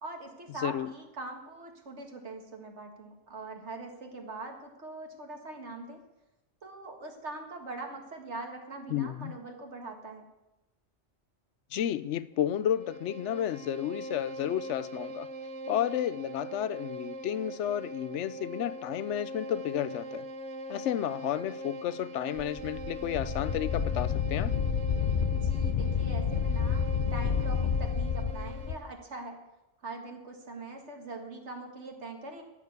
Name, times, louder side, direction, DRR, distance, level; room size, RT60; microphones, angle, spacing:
voice 1, 0.0-6.0 6.6-10.2 25.3-26.8 27.1-29.4 29.8-32.4, right 2 dB, 75° right, 2.1 m, -42 dB
voice 2, 0.6-0.9 8.9-9.4 11.7-15.3 15.7-20.3 20.7-24.5, left 11 dB, 80° left, 0.9 m, -32 dB
Bowed string instrument, 12.3-28.9, right 2 dB, 90° right, 1.3 m, -42 dB
Wind, 22.4-28.8, left 7 dB, 50° left, 0.7 m, -29 dB
14.0 x 6.8 x 8.1 m
omnidirectional pair, 1.2 m